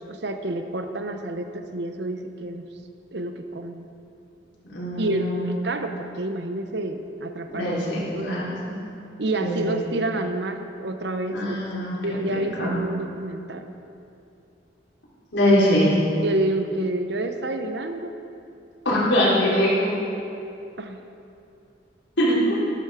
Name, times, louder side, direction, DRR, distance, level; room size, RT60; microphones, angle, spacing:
voice 1, 0.1-2.6 3.1-3.9 5.0-7.7 8.1-8.4 9.2-11.4 12.0-13.7 16.2-18.1 20.8-21.0, right 2 dB, 65° right, 7 dB, 0.9 m, -28 dB
voice 2, 4.7-5.5 7.5-8.6 9.4-9.8 11.3-12.0 12.6-12.8 15.3-15.9 18.9-19.9 22.2-22.6, equal, 90° left, -8 dB, 3.8 m, -22 dB
13.0 x 12.5 x 4.9 m, 2.7 s
head